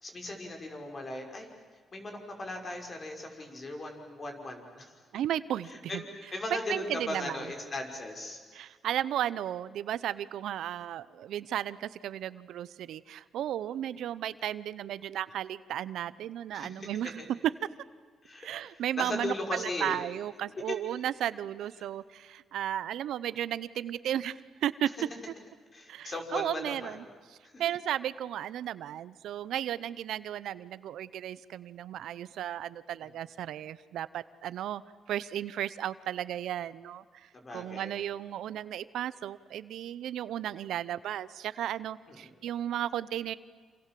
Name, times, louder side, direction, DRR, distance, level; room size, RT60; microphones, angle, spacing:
voice 1, 0.0-1.5 1.9-4.9 5.7-8.4 16.5-16.8 18.2-20.0 20.7-20.8 25.7-27.0 27.4-27.6 33.0-33.1 37.3-37.9 42.1-42.3, left 2 dB, 35° left, 3 dB, 5.8 m, -38 dB
voice 2, 5.1-6.0 6.7-7.4 8.5-17.2 18.4-24.9 25.3-25.4 25.9-27.0 27.6-34.8 35.1-43.4, right 11 dB, 80° right, 17 dB, 0.8 m, -34 dB
28.0 x 27.5 x 7.7 m, 1.5 s
cardioid pair, 95°, 0 cm